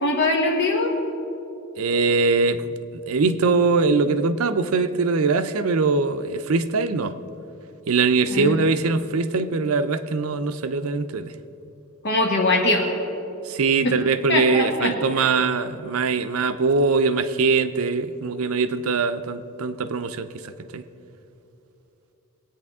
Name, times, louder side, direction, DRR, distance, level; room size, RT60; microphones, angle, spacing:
voice 1, 0.0-0.9 8.3-8.7 12.0-12.9 13.8-13.9 14.3-14.9, left 2 dB, 55° left, 1 dB, 1.6 m, -22 dB
voice 2, 1.8-2.7 3.1-7.2 7.9-11.3 13.5-20.8, right 4 dB, 80° right, 11 dB, 0.5 m, -22 dB
19.5 x 8.9 x 3.6 m, 2.9 s
head